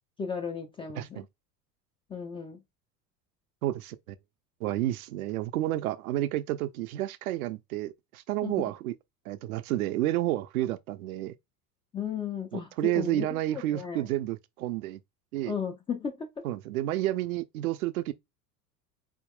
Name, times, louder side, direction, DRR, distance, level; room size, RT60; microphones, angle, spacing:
voice 1, 0.2-1.2 2.1-2.6 8.4-8.7 11.9-13.3 13.5-14.1 15.4-16.4, left 6 dB, 10° left, 0.4 m, -35 dB
voice 2, 3.6-4.2 4.6-8.9 9.3-11.3 12.5-15.0 15.3-15.5 16.4-18.1, right 15 dB, 60° right, 0.6 m, -30 dB
4.1 x 3.6 x 2.3 m
figure-of-eight pair, 75°, 50 cm